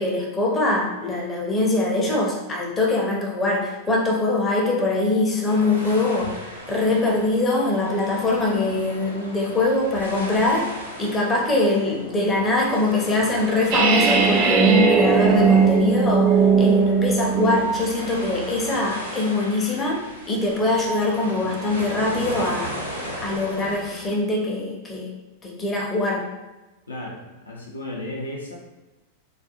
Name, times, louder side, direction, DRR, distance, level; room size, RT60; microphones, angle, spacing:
voice 1, 0.0-22.8 23.2-26.3, left 2 dB, 20° left, -2 dB, 0.5 m, -23 dB
sound 1, 5.5-24.1, equal, 90° right, 0.7 m, -37 dB
sound 2, 13.7-17.7, right 6 dB, 40° right, 0.3 m, -18 dB
voice 2, 26.9-27.2 27.5-28.6, left 1 dB, 75° left, -2 dB, 0.5 m, -33 dB
2.3 x 2.2 x 2.8 m, 1.1 s
figure-of-eight pair, 90°, 0 cm